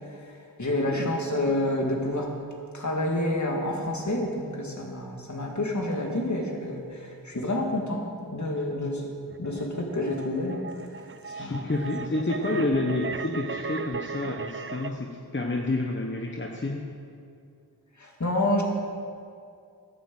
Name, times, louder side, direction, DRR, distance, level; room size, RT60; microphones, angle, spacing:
voice 1, 0.6-2.3 2.7-9.1 9.4-10.6 11.4-11.7 12.5-12.7 18.0-18.6, left 1 dB, 50° left, 0 dB, 2.2 m, -28 dB
sound 1, 9.3-14.9, right 4 dB, 35° right, 0.5 m, -37 dB
voice 2, 11.3-16.8, left 2 dB, 30° left, 0 dB, 1.1 m, -29 dB
11.0 x 9.6 x 7.7 m, 2.4 s
wide cardioid pair, 60°, 37 cm